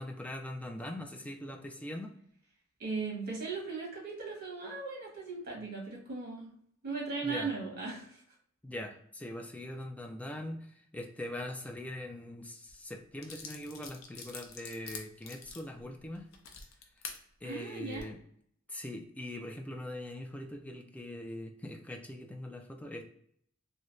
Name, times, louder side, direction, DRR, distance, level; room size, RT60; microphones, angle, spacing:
voice 1, 0.0-2.1 7.2-7.5 8.6-16.3 17.4-18.2 18.7-23.0, left 1 dB, 5° left, 3 dB, 0.3 m, -42 dB
voice 2, 2.8-6.5 6.8-8.2 17.4-18.0, right 4 dB, 50° right, -3 dB, 1.3 m, -38 dB
sound 1, 12.7-12.8 13.2-17.2 17.8-18.0, left 5 dB, 75° left, 0.6 m, -46 dB
3.1 x 2.7 x 2.6 m, 0.66 s
head